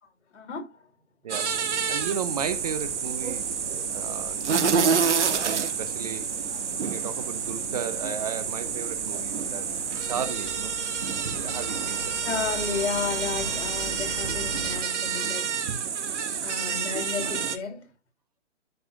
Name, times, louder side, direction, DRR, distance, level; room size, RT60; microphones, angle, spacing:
voice 1, 0.3-0.7 12.2-15.6 16.4-17.9, left 5 dB, 65° left, 3.2 m, -32 dB
sound 1, 1.3-17.6, right 6 dB, 65° right, 2.0 m, -28 dB
voice 2, 1.9-3.5 3.9-4.9 5.4-6.3 6.8-9.7 10.1-10.8 11.3-12.4, right 7 dB, 30° right, 0.8 m, -35 dB
sound 2, 2.3-14.8, left 3 dB, 30° left, 1.9 m, -43 dB
12.5 x 5.5 x 2.5 m
hypercardioid pair, 165°, 37 cm